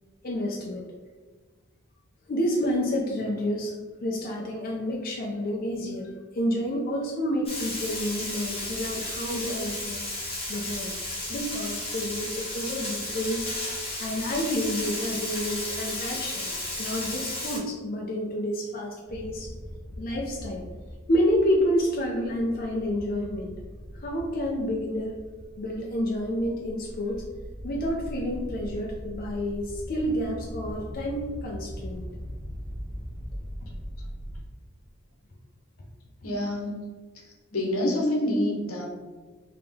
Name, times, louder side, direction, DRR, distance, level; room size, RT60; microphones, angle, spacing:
voice 1, 0.2-0.8 2.3-10.0 10.5-10.9 11.3-16.5 16.8-19.5 20.0-20.6 21.1-23.5 23.9-25.1 25.6-27.2 27.6-32.1, equal, 40° left, -1 dB, 0.5 m, -29 dB
Frying (food), 7.5-17.6, left 1 dB, 25° left, 1.0 m, -33 dB
sound 1, 19.1-34.4, equal, 5° right, 0.9 m, -40 dB
voice 2, 36.2-36.8 37.2-38.8, left 1 dB, 80° left, -1 dB, 1.0 m, -27 dB
3.5 x 2.9 x 3.4 m, 1.3 s
head